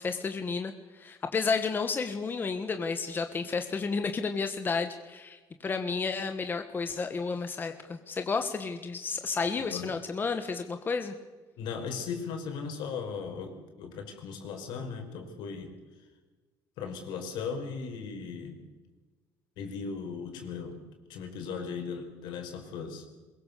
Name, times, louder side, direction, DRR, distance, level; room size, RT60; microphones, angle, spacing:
voice 1, 0.0-11.1, left 4 dB, 25° left, 7 dB, 1.5 m, -32 dB
voice 2, 9.6-10.0 11.6-15.7 16.8-18.6 19.6-20.8 21.1-23.1, left 5 dB, 80° left, 4 dB, 5.3 m, -37 dB
23.0 x 22.0 x 6.8 m, 1.3 s
cardioid pair, 125°, 8 cm